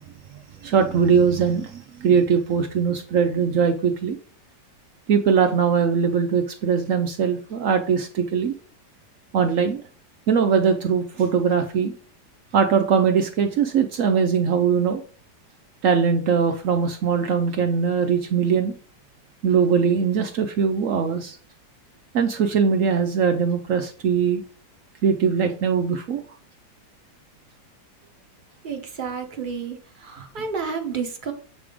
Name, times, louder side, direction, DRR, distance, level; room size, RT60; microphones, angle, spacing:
voice 1, 0.6-4.2 5.1-8.5 9.3-9.8 10.3-11.9 12.5-15.0 15.8-18.7 19.4-21.4 22.1-24.4 25.0-26.2, right 6 dB, 80° right, 6 dB, 0.7 m, -21 dB
voice 2, 28.6-31.3, right 5 dB, 35° right, 5 dB, 0.8 m, -31 dB
7.7 x 3.5 x 4.9 m, 0.43 s
omnidirectional pair, 2.1 m